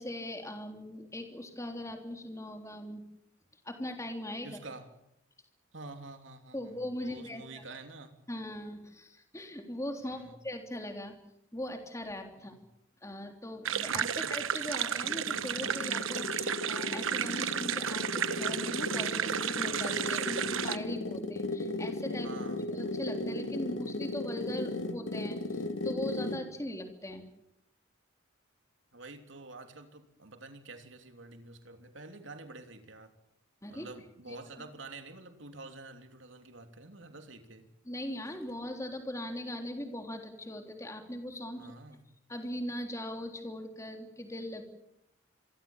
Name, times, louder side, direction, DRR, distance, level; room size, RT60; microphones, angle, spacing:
voice 1, 0.0-3.0 3.6-4.6 6.5-7.4 8.3-11.1 11.5-12.5 13.0-22.3 22.7-27.2 33.6-33.9 34.3-34.4 37.8-41.7 42.3-44.6, left 1 dB, 15° left, 4 dB, 3.4 m, -40 dB
voice 2, 4.4-4.9 5.7-8.1 10.0-10.4 12.4-12.6 14.1-14.2 22.2-22.7 28.9-33.1 33.7-37.7 41.6-42.0, right 3 dB, 70° right, 6 dB, 3.1 m, -48 dB
sound 1, 13.7-20.8, right 8 dB, 85° right, 1.1 m, -33 dB
sound 2, 14.8-26.5, left 2 dB, 70° left, 2.1 m, -36 dB
26.5 x 23.5 x 7.3 m, 0.79 s
head